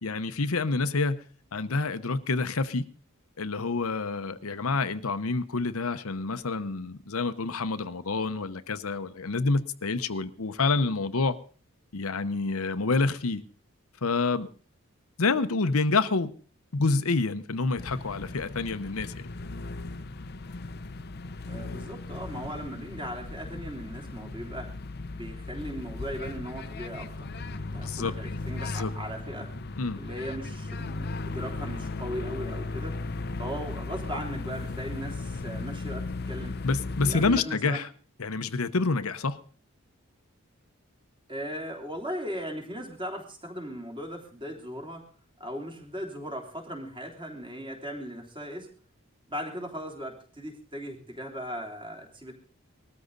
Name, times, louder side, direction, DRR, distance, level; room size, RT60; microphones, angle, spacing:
voice 1, 0.0-1.2 1.5-2.9 3.4-11.4 11.9-13.4 14.0-14.5 15.2-16.3 16.7-19.3 27.8-28.1 28.6-28.9 29.8-30.0 36.6-37.9 38.2-39.4, left 3 dB, 80° left, 0.9 m, -28 dB
sound 1, 17.8-37.4, left 3 dB, 45° left, 0.7 m, -36 dB
voice 2, 21.5-24.7 25.1-29.5 30.0-33.0 33.4-36.6 37.0-37.8 41.3-45.0 45.4-48.7 49.3-52.3, equal, 25° right, 3.3 m, -38 dB
20.0 x 13.5 x 4.0 m
head